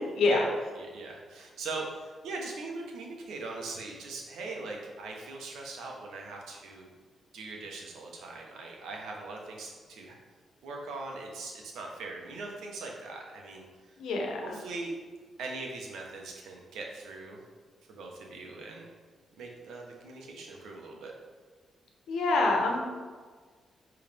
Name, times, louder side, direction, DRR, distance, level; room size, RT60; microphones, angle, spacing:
voice 1, 0.7-6.9 7.3-10.2 10.6-13.6 14.4-15.0 15.4-17.4 17.9-18.9 19.4-21.1, right 3 dB, 80° right, 0 dB, 1.4 m, -40 dB
voice 2, 14.0-14.6 22.1-22.8, left 3 dB, 80° left, 1 dB, 1.2 m, -26 dB
10.5 x 3.7 x 3.6 m, 1.5 s
cardioid pair, 65°, 0 cm